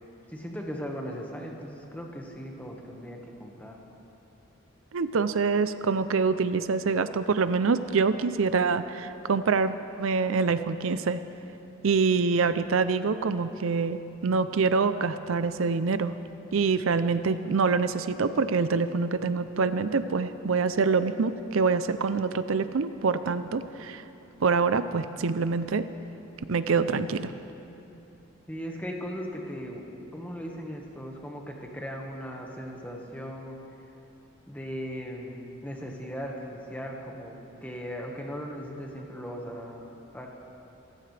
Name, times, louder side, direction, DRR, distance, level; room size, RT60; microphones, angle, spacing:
voice 1, 0.3-3.8 28.5-33.6 34.5-40.3, equal, 10° left, 0 dB, 1.5 m, -38 dB
voice 2, 4.9-11.2 11.8-16.2 16.5-24.0 24.4-25.9 26.5-27.3, right 4 dB, 85° right, 12 dB, 0.5 m, -25 dB
26.0 x 15.0 x 3.4 m, 2.9 s
head